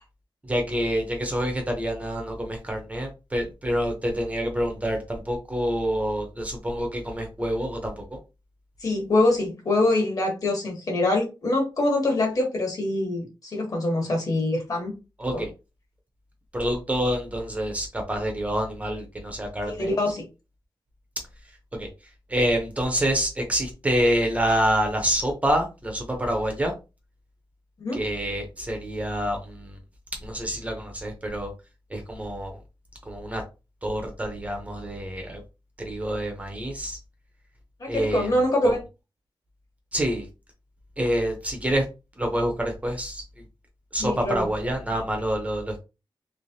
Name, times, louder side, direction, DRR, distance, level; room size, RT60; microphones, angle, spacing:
voice 1, 0.4-8.2 15.2-15.5 16.5-19.9 21.7-21.9 22.3-26.7 27.9-29.7 30.2-31.5 31.9-32.5 33.1-33.4 33.8-35.4 35.8-37.0 37.9-38.3 38.6-38.7 39.9-40.3 41.0-41.8 42.2-43.2 43.9-45.8, equal, 15° right, 3 dB, 0.7 m, -27 dB
voice 2, 8.8-14.9 15.3-15.5 19.7-20.2 27.8-28.0 37.8-38.8 44.0-44.4, left 2 dB, 45° left, 0 dB, 1.3 m, -24 dB
3.2 x 3.0 x 2.7 m, 0.28 s
wide cardioid pair, 170°, 9 cm